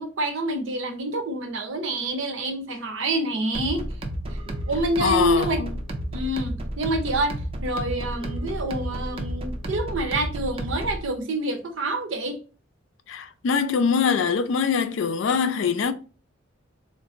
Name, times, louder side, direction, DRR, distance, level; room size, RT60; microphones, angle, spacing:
voice 1, 0.0-3.9 4.7-5.6 6.1-12.4, right 1 dB, 65° right, 0.6 m, -27 dB
sound 1, 3.5-11.1, right 1 dB, 25° right, 0.4 m, -31 dB
voice 2, 5.0-5.7 13.1-15.9, left 6 dB, 65° left, 0.4 m, -23 dB
3.8 x 2.6 x 2.4 m
head